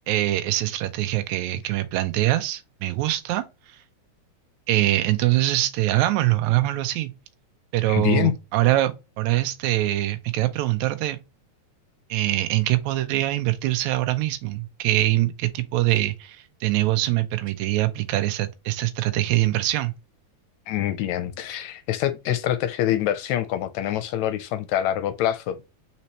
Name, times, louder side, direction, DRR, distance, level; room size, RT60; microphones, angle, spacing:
voice 1, 0.1-3.8 4.7-7.1 7.7-11.2 12.1-19.9, right 16 dB, 80° right, 1.9 m, -23 dB
voice 2, 7.9-8.3 20.7-25.6, left 12 dB, 80° left, 1.7 m, -25 dB
4.3 x 4.2 x 2.9 m
omnidirectional pair, 3.5 m